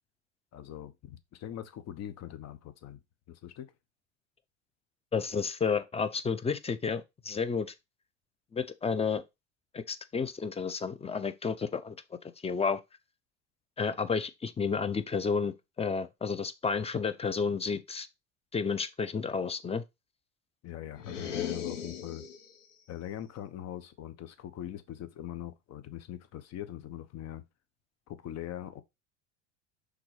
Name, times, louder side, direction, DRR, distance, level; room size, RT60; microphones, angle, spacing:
voice 1, 0.5-3.0 3.3-3.7 20.6-22.3 22.9-27.4 28.1-28.8, left 11 dB, 45° left, 1.2 m, -42 dB
voice 2, 5.1-7.7 8.5-9.2 9.7-12.0 12.4-12.8 13.8-18.1 18.5-19.8, left 5 dB, 15° left, 0.8 m, -31 dB
sound 1, 21.0-22.6, left 8 dB, 85° left, 1.3 m, -37 dB
6.0 x 4.0 x 4.9 m
hypercardioid pair, 80°, 36 cm